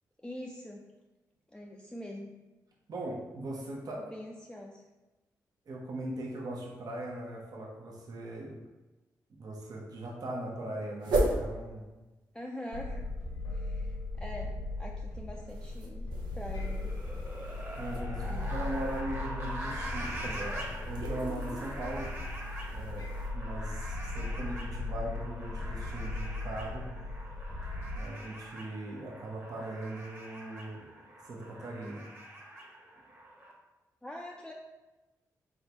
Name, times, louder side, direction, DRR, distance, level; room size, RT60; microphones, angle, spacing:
voice 1, 0.2-0.8 1.5-2.3 4.0-4.8 12.3-13.0 13.5-16.1 16.3-17.0 18.3-18.7 34.0-34.5, left 1 dB, 10° left, -1 dB, 0.4 m, -44 dB
voice 2, 2.9-4.0 5.7-8.6 9.3-11.9 17.8-22.1 22.7-26.9 27.9-30.8 31.2-32.0, right 1 dB, 60° right, -2 dB, 0.9 m, -39 dB
sound 1, 11.0-11.4 15.5-19.0 20.0-23.3, right 2 dB, 90° right, 0.6 m, -36 dB
sound 2, 12.7-28.0, left 2 dB, 80° left, 1.0 m, -38 dB
sound 3, 16.5-33.5, right 1 dB, 30° right, 1.2 m, -44 dB
3.7 x 3.4 x 2.9 m, 1.1 s
supercardioid pair, 50°, 7 cm